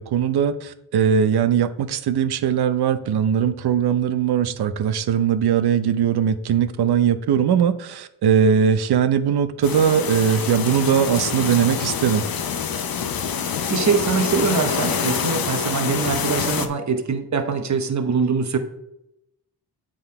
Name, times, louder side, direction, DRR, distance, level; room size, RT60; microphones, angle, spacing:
voice 1, 0.0-12.2, right 8 dB, 70° right, 12 dB, 0.6 m, -20 dB
sound 1, 9.6-16.7, left 7 dB, 60° left, 0.7 m, -26 dB
voice 2, 13.7-18.6, right 5 dB, 45° right, 7 dB, 1.0 m, -23 dB
7.9 x 3.8 x 4.4 m, 0.83 s
cardioid pair, 70°, 40 cm